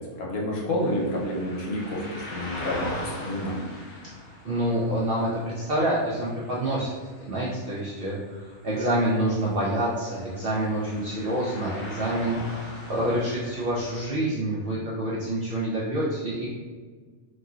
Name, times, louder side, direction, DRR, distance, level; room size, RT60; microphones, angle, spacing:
voice 1, 0.0-3.6, left 1 dB, 80° left, -2 dB, 1.2 m, -29 dB
sound 1, 0.8-14.1, left 1 dB, 55° left, 0.7 m, -41 dB
voice 2, 4.4-6.9 7.2-16.5, right 1 dB, 70° right, -7 dB, 0.5 m, -27 dB
2.9 x 2.6 x 2.3 m, 1.5 s
omnidirectional pair, 1.5 m